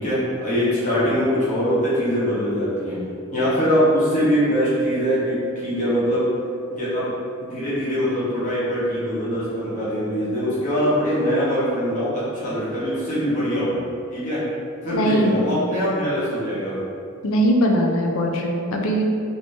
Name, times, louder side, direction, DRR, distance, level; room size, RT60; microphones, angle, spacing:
voice 1, 0.0-3.0 3.3-6.3 6.7-7.1 7.4-13.7 14.1-14.4 14.8-16.8, equal, 35° left, -11 dB, 1.2 m, -22 dB
voice 2, 14.9-15.5 17.2-19.0, equal, 65° left, 1 dB, 0.5 m, -20 dB
3.1 x 2.7 x 3.2 m, 2.4 s
head